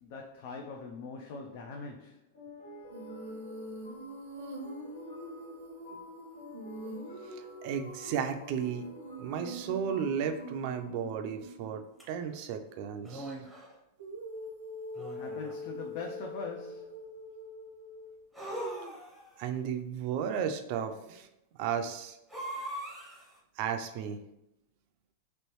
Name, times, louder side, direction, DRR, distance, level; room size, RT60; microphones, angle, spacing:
voice 1, 0.0-2.2 15.1-17.0, left 4 dB, 55° left, 2 dB, 0.4 m, -42 dB
sound 1, 2.3-11.6, left 1 dB, 85° left, 1.4 m, -51 dB
Female singing, 2.9-11.8 14.0-18.2, equal, 85° right, 0.6 m, -44 dB
voice 2, 7.3-8.9 9.2-11.8 12.1-13.3 19.4-21.3 21.6-22.2 23.6-24.2, right 7 dB, 50° right, 7 dB, 0.4 m, -34 dB
sound 2, 12.0-12.1 13.0-13.7 14.9-15.7 18.3-19.4 22.3-23.4, right 1 dB, ahead, 0.8 m, -40 dB
3.1 x 3.0 x 3.0 m, 0.85 s
supercardioid pair, 140°, 0 cm